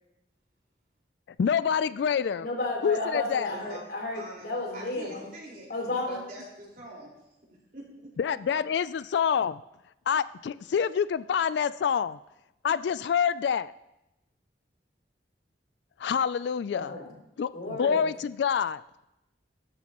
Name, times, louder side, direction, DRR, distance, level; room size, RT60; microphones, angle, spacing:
voice 1, 1.4-2.5 2.8-3.5 8.2-9.6 10.1-12.2 12.6-13.7 16.0-16.9 17.4-18.8, left 7 dB, 75° left, 16 dB, 0.3 m, -27 dB
voice 2, 2.4-5.3 5.7-6.2 16.7-17.1 17.5-18.1, left 2 dB, 60° left, -1 dB, 3.7 m, -32 dB
voice 3, 3.5-3.8 4.1-5.7 6.1-7.1 7.5-8.4, right 1 dB, 50° right, -3 dB, 4.7 m, -45 dB
16.5 x 13.0 x 3.0 m, 0.91 s
head